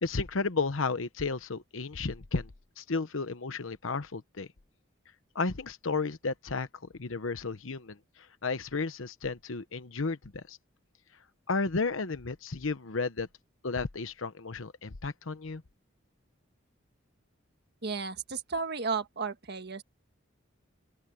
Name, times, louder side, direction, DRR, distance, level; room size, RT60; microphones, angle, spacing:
voice 1, 0.0-2.5 2.8-4.5 5.3-6.7 7.0-8.0 8.4-10.6 11.5-13.3 13.6-15.6, left 4 dB, 75° left, 1.0 m, -33 dB
voice 2, 17.8-19.8, right 5 dB, 55° right, 1.6 m, -33 dB
open air
head